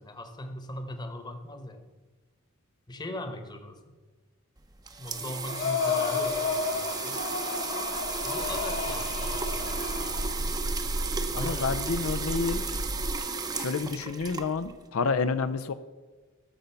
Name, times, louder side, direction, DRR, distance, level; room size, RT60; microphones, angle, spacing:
voice 1, 0.0-1.9 2.9-3.8 5.0-7.2 8.2-9.6 11.4-12.1, left 1 dB, 20° left, 7 dB, 1.1 m, -40 dB
sound 1, 4.6-14.9, right 4 dB, 20° right, 0.7 m, -34 dB
Breathing, 5.5-10.4, left 5 dB, 65° left, 1.5 m, -32 dB
sound 2, 7.7-13.2, right 1 dB, 55° right, 0.8 m, -35 dB
voice 2, 11.3-12.6 13.6-15.7, left 4 dB, 85° left, 11 dB, 0.5 m, -29 dB
13.0 x 5.3 x 6.8 m, 1.3 s
head